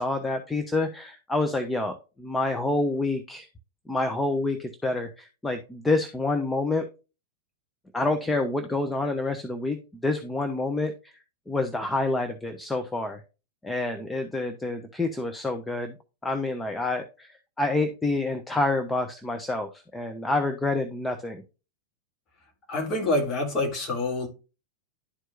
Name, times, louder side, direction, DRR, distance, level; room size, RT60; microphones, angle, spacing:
voice 1, 0.0-3.5 3.9-6.8 7.9-9.8 10.0-11.1 11.5-13.2 13.6-15.9 16.2-21.4, left 2 dB, 10° left, 0.8 m, -28 dB
voice 2, 22.7-24.3, left 2 dB, 30° left, 2.4 m, -26 dB
11.5 x 4.6 x 2.4 m
figure-of-eight pair, 90°, 0 cm